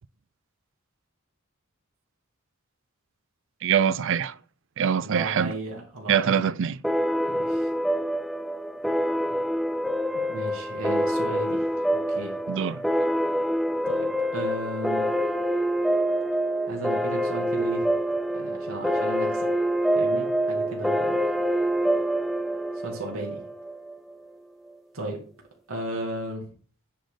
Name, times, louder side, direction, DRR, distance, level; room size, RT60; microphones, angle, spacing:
voice 1, 3.6-4.4 4.8-5.5 6.1-6.8 12.5-12.8, right 7 dB, 65° right, 0.5 m, -24 dB
voice 2, 5.0-6.5 7.3-7.7 10.1-11.7 12.1-12.4 13.9-15.1 16.7-17.9 18.3-19.5 19.9-21.2 22.8-23.4 24.9-25.2 25.7-26.5, right 1 dB, 85° right, 2.4 m, -35 dB
sound 1, 6.8-23.9, equal, ahead, 0.4 m, -26 dB
10.0 x 4.2 x 5.0 m
head